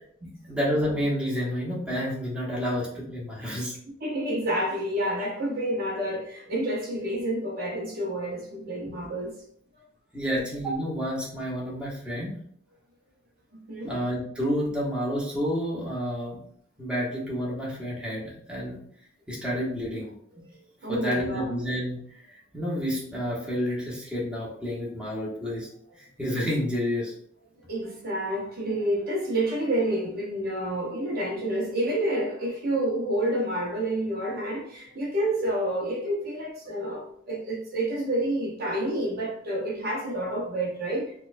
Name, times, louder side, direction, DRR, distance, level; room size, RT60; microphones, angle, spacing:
voice 1, 0.4-3.7 8.9-9.0 10.1-12.3 13.8-16.4 16.8-18.8 19.3-20.1 20.9-25.7 26.0-27.1, equal, 5° right, 1.0 m, -29 dB
voice 2, 4.0-9.3 13.5-14.0 20.8-21.5 27.7-41.1, right 1 dB, 50° right, 0.7 m, -29 dB
4.2 x 2.3 x 2.5 m
head